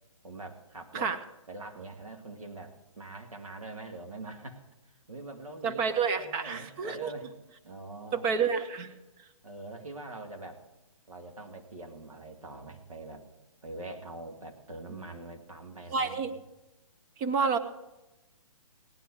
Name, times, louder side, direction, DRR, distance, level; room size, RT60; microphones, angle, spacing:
voice 1, 0.2-1.1 1.5-4.6 5.1-7.3 7.6-8.4 9.4-10.6 11.1-13.2 13.6-16.4, right 2 dB, 90° right, 4 dB, 2.3 m, -44 dB
voice 2, 5.6-7.1 8.1-8.9 15.9-16.3 17.2-17.6, right 5 dB, 25° right, 8 dB, 1.0 m, -29 dB
17.5 x 10.0 x 4.8 m, 1.0 s
hypercardioid pair, 145°, 17 cm